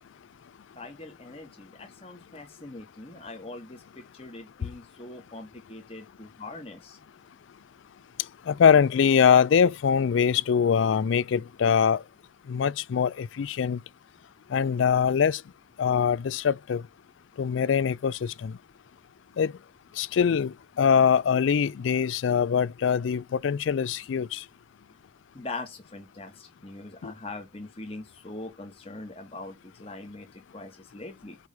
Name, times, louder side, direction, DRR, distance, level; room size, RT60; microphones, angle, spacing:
voice 1, 0.7-7.0 25.3-31.4, left 2 dB, 30° left, 1.4 m, -42 dB
voice 2, 8.5-12.0 12.5-13.8 14.5-15.4 15.8-16.8 17.4-18.5 19.4-19.5 20.0-24.4 27.0-27.1, left 7 dB, 80° left, 0.4 m, -23 dB
8.2 x 3.2 x 5.4 m
head